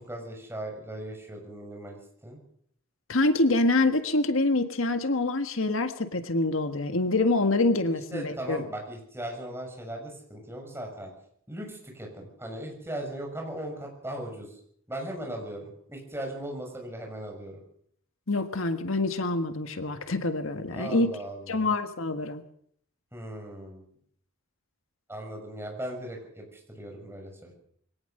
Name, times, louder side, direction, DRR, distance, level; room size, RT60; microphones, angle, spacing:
voice 1, 0.0-2.4 7.8-11.1 11.5-14.6 14.9-17.6 20.7-21.7 23.1-23.9 25.1-27.5, right 1 dB, 10° right, 1 dB, 6.6 m, -38 dB
voice 2, 3.1-8.6 18.3-21.1 21.5-22.4, left 2 dB, 80° left, 8 dB, 1.7 m, -26 dB
23.0 x 18.0 x 6.7 m, 0.64 s
head